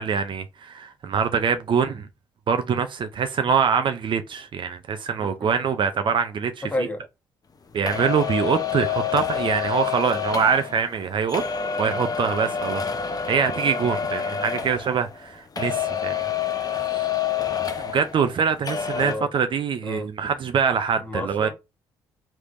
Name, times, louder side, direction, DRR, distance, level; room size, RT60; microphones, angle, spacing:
voice 1, 0.0-2.1 2.5-6.5 7.7-11.4 11.8-12.8 13.3-17.1 17.8-21.5, right 6 dB, 50° right, 0.5 m, -24 dB
voice 2, 5.2-5.5 6.6-7.0 18.9-19.3 19.8-20.1 21.0-21.5, left 1 dB, 15° left, 1.2 m, -31 dB
sound 1, 7.9-15.3 15.6-18.4 18.6-19.1, left 8 dB, 35° left, 0.7 m, -28 dB
3.3 x 3.1 x 2.6 m
hypercardioid pair, 60°, 11 cm